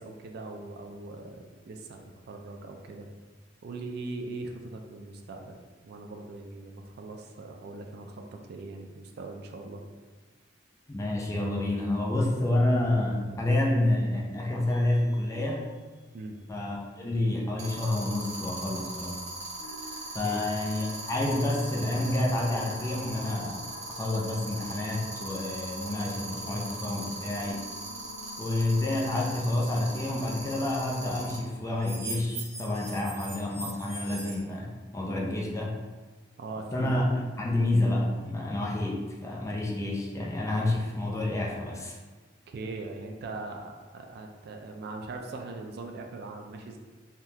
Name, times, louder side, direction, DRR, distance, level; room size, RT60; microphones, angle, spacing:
voice 1, 0.0-3.1 3.6-5.6 5.8-9.8 16.1-16.4 20.2-20.4 36.4-37.0 42.5-46.8, right 3 dB, 60° right, 3 dB, 0.3 m, -40 dB
voice 2, 10.9-15.7 16.5-19.2 20.1-23.6 24.0-27.6 28.4-35.8 36.7-42.0, left 1 dB, 15° left, -2 dB, 0.4 m, -29 dB
sound 1, 14.7-15.0 17.6-31.4 31.8-34.3, right 2 dB, 40° right, 0.7 m, -39 dB
sound 2, 19.6-32.7, left 2 dB, 80° left, 0.4 m, -50 dB
3.5 x 2.3 x 2.7 m, 1.4 s
head